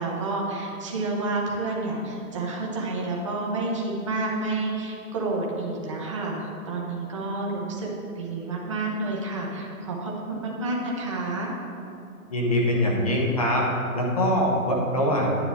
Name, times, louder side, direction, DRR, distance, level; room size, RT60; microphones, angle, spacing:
voice 1, 0.0-7.9 8.2-11.5, right 2 dB, 20° right, -3 dB, 0.7 m, -29 dB
voice 2, 12.3-13.7 13.9-15.3, equal, 25° left, -1 dB, 0.8 m, -23 dB
9.9 x 7.4 x 3.5 m, 2.7 s
hypercardioid pair, 175°, 43 cm